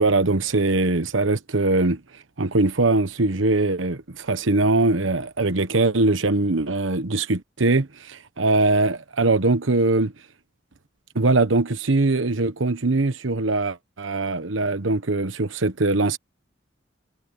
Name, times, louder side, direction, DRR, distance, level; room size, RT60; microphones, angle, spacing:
voice 1, 0.0-2.0 2.4-10.1 11.1-16.2, right 2 dB, 90° right, 1.2 m, -21 dB
head